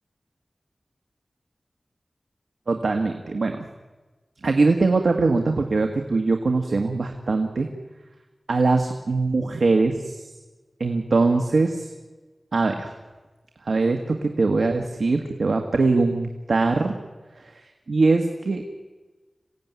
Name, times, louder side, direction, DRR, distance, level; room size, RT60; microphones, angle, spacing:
voice 1, 2.7-3.6 4.4-7.7 8.5-10.2 10.8-11.9 12.5-12.9 13.7-16.9 17.9-18.6, right 3 dB, 85° right, 5 dB, 1.6 m, -22 dB
27.0 x 17.0 x 9.6 m, 1.3 s
wide cardioid pair, 70°, 0 cm